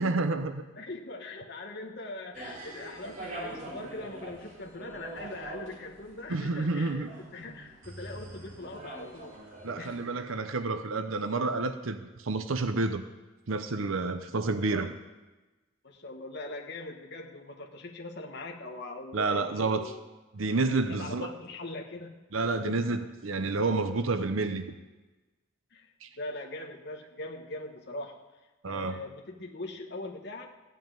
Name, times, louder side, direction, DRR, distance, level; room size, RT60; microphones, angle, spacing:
voice 1, 0.0-0.7 6.3-7.1 9.6-13.1 13.5-14.9 19.1-19.9 20.3-21.3 22.3-24.7 26.0-26.1 28.6-29.0, right 3 dB, 80° right, 9 dB, 0.8 m, -29 dB
voice 2, 0.8-7.0 7.3-9.3 9.8-10.0 14.5-14.9 15.8-20.0 20.9-22.2 22.6-22.9 25.7-25.9 26.2-28.2 28.7-30.5, left 2 dB, 55° left, 0 dB, 1.4 m, -41 dB
sound 1, 2.3-10.0, right 2 dB, 35° right, 4.2 m, -44 dB
15.0 x 5.7 x 9.1 m, 1.1 s
head